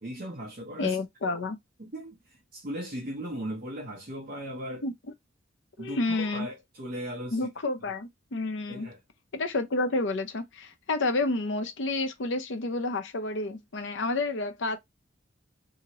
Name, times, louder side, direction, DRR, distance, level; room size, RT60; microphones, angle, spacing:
voice 1, 0.0-1.0 1.2-1.3 1.8-4.9 5.8-7.5 8.7-9.0, equal, 50° right, 0.9 m, -38 dB
voice 2, 0.8-1.6 4.8-4.9 5.8-6.5 7.3-8.9 9.3-14.8, left 2 dB, 70° left, 0.7 m, -30 dB
2.9 x 2.8 x 2.9 m
head